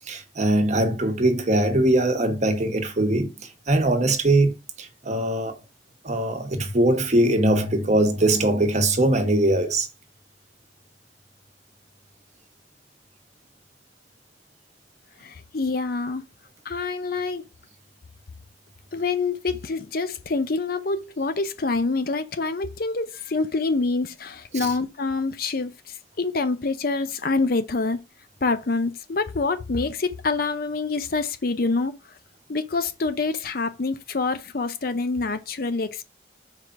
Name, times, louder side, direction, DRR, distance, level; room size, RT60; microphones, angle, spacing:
voice 1, 0.1-3.3 3.7-5.5 6.0-9.9 24.5-24.7, right 1 dB, 40° right, 1.1 m, -21 dB
voice 2, 15.2-16.2 16.7-17.4 18.9-25.7 26.2-28.0 28.4-31.9 32.5-36.0, left 3 dB, 55° left, 0.7 m, -26 dB
4.8 x 3.8 x 5.7 m
head